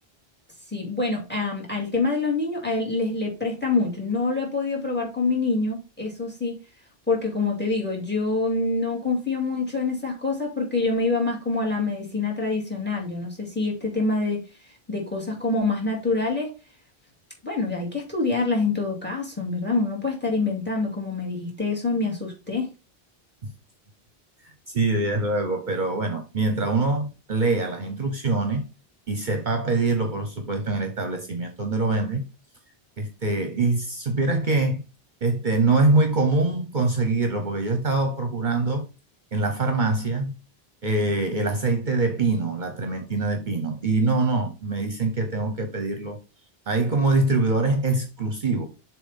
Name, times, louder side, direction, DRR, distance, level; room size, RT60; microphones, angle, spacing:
voice 1, 0.7-6.6 7.1-14.4 14.9-16.5 17.4-22.7, left 3 dB, 10° left, 2.4 m, -26 dB
voice 2, 24.7-28.7 29.1-32.2 33.0-34.8 35.2-38.9 39.3-40.3 40.8-46.2 46.7-48.7, right 3 dB, 50° right, 1.0 m, -24 dB
7.0 x 3.0 x 5.5 m
omnidirectional pair, 1.0 m